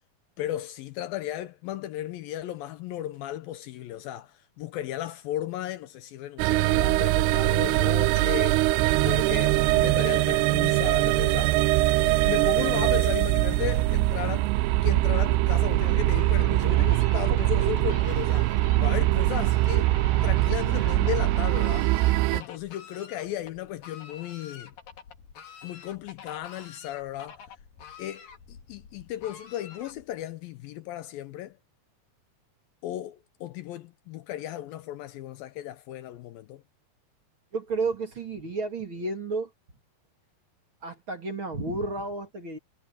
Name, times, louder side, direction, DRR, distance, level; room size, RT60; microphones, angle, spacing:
voice 1, 0.4-8.7 9.0-11.6 12.0-14.5 14.8-18.5 18.8-19.9 20.2-22.0 22.3-24.7 25.6-27.4 28.0-31.6 32.8-36.6, left 13 dB, 80° left, 2.4 m, -35 dB
sound 1, 6.4-22.4, right 18 dB, 85° right, 2.6 m, -22 dB
Fowl, 15.5-30.3, left 7 dB, 60° left, 4.3 m, -48 dB
voice 2, 37.5-39.5 40.8-42.6, right 3 dB, 35° right, 3.2 m, -31 dB
omnidirectional pair, 4.5 m